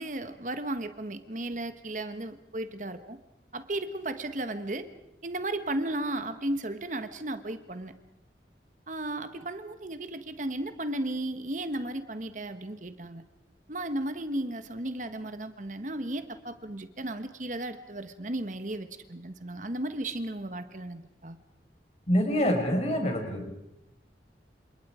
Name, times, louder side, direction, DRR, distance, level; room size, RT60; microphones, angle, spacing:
voice 1, 0.0-3.2 3.5-4.9 5.2-7.9 8.9-13.2 13.7-21.4, right 1 dB, 45° right, 10 dB, 1.3 m, -35 dB
voice 2, 22.1-23.5, equal, 35° left, 3 dB, 5.6 m, -26 dB
30.0 x 28.0 x 5.0 m, 0.85 s
head